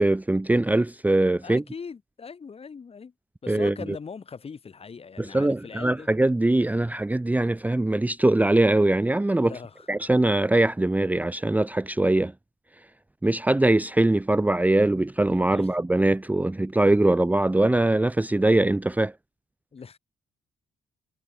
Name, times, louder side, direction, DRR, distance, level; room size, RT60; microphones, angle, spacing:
voice 1, 0.0-1.6 3.5-3.7 5.2-9.5 9.9-12.3 13.2-19.1, right 2 dB, 10° right, 0.8 m, -22 dB
voice 2, 1.4-3.1 3.4-6.1 9.5-9.9 15.5-15.7 19.7-20.0, left 5 dB, 40° left, 2.9 m, -40 dB
cardioid pair, 85°, 16 cm